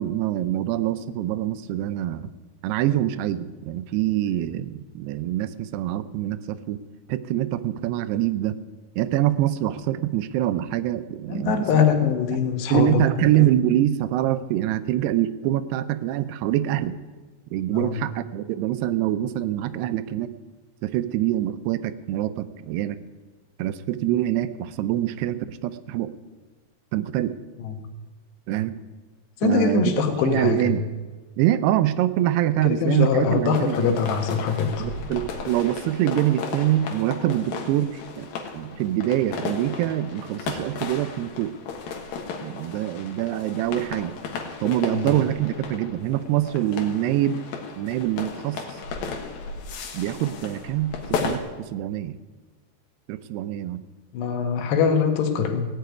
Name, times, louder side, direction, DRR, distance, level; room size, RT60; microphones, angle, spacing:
voice 1, 0.0-2.3 2.6-6.8 7.1-8.6 9.0-11.9 12.7-17.0 17.5-20.3 20.8-23.0 23.6-26.1 26.9-27.3 28.5-28.8 29.4-29.9 30.3-30.8 31.4-34.0 34.8-41.5 42.4-44.1 44.6-47.4 47.8-48.8 49.9-52.2 53.1-53.8, right 13 dB, 85° right, 13 dB, 2.7 m, -25 dB
voice 2, 11.3-13.3 17.7-18.0 27.6-27.8 29.4-30.8 32.6-34.9 44.9-45.1 54.1-55.7, left 6 dB, 85° left, 5 dB, 3.6 m, -23 dB
sound 1, 33.2-51.4, left 5 dB, 65° left, 2.9 m, -35 dB
16.5 x 6.8 x 9.3 m, 1.3 s
omnidirectional pair, 4.7 m